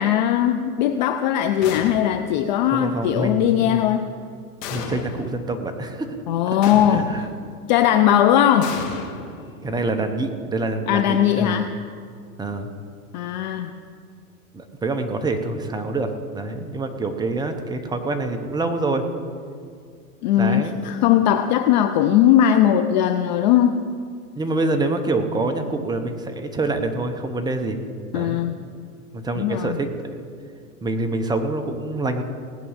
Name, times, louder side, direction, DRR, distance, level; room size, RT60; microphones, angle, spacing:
voice 1, 0.0-4.1 6.3-7.2 7.7-8.9 10.9-11.8 13.1-13.8 20.2-23.8 28.1-28.6 29.4-29.8, left 10 dB, 35° left, 8 dB, 0.4 m, -19 dB
sound 1, 1.6-2.4 4.6-5.4 6.6-7.4 8.6-9.8, left 5 dB, 55° left, 2.1 m, -33 dB
voice 2, 2.7-3.8 4.7-6.1 6.5-6.6 6.9-7.3 9.6-11.6 12.4-12.7 14.5-19.0 20.4-20.8 24.4-27.8 28.1-28.4 29.1-29.9 30.8-32.2, right 2 dB, 10° right, 6 dB, 0.7 m, -26 dB
18.0 x 6.1 x 8.7 m, 2.2 s
hypercardioid pair, 135°, 46 cm